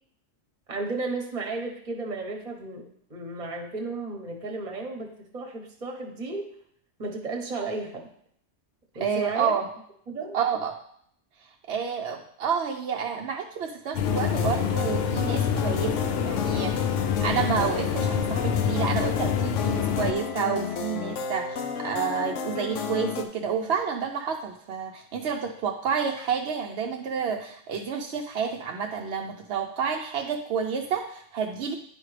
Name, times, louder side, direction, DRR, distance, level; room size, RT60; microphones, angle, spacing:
voice 1, 0.7-6.5 7.0-8.1 8.9-9.5 10.1-10.4, right 3 dB, 35° right, 2 dB, 1.1 m, -33 dB
voice 2, 9.0-9.7 10.3-10.8 11.4-16.8 17.2-31.8, right 7 dB, 65° right, 1 dB, 0.8 m, -29 dB
sound 1, 13.9-20.1, left 8 dB, 65° left, 0.7 m, -27 dB
sound 2, 14.0-23.3, left 6 dB, 80° left, 1.0 m, -32 dB
9.8 x 4.9 x 3.2 m, 0.66 s
omnidirectional pair, 1.2 m